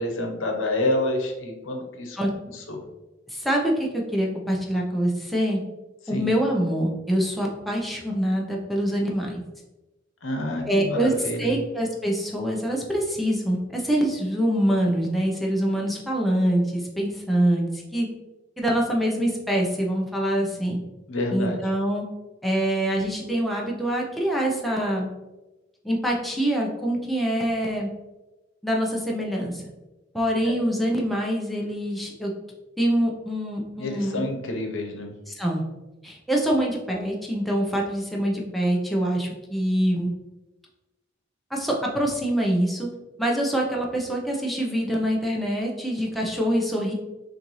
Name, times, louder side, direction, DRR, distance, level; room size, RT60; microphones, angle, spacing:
voice 1, 0.0-2.2 2.5-2.8 6.1-6.3 10.2-11.6 21.1-21.7 30.4-30.5 33.8-35.1, left 1 dB, 85° left, 2 dB, 0.9 m, -28 dB
voice 2, 3.3-5.6 6.1-9.4 10.7-11.1 11.4-18.1 18.6-20.8 21.3-22.1 22.4-25.1 25.8-27.9 28.6-29.6 30.1-32.3 32.8-34.3 35.4-35.6 36.0-40.1 41.5-42.9 43.2-46.9, right 1 dB, ahead, -2 dB, 0.7 m, -25 dB
6.4 x 2.6 x 3.1 m, 1.1 s
head